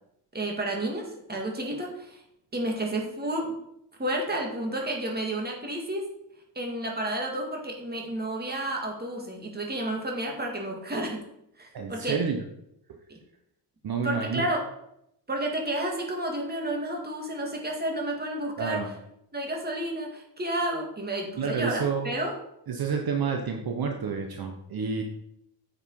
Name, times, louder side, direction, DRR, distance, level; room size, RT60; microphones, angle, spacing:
voice 1, 0.3-2.2 2.5-3.5 4.0-6.1 6.6-11.2 11.6-12.2 13.1-13.2 14.0-14.6 15.3-18.9 19.3-22.3, right 1 dB, 20° right, 0 dB, 2.3 m, -31 dB
voice 2, 11.7-12.4 13.8-14.5 18.6-18.9 21.4-22.1 22.7-25.0, right 5 dB, 55° right, 3 dB, 1.1 m, -29 dB
9.2 x 6.6 x 4.9 m, 0.79 s
wide cardioid pair, 130°, 43 cm